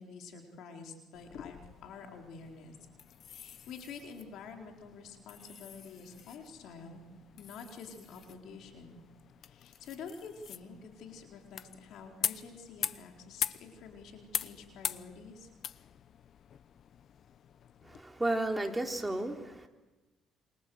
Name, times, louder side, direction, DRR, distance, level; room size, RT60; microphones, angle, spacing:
voice 1, 0.0-2.8 3.2-7.0 7.4-9.0 9.4-15.5, left 5 dB, 75° left, 3 dB, 4.4 m, -48 dB
sound 1, 1.1-18.0, left 9 dB, 55° left, 0.8 m, -43 dB
voice 2, 17.8-19.7, right 1 dB, 10° right, 3 dB, 3.5 m, -33 dB
28.5 x 25.5 x 8.1 m, 1.1 s
cardioid pair, 95°, 0 cm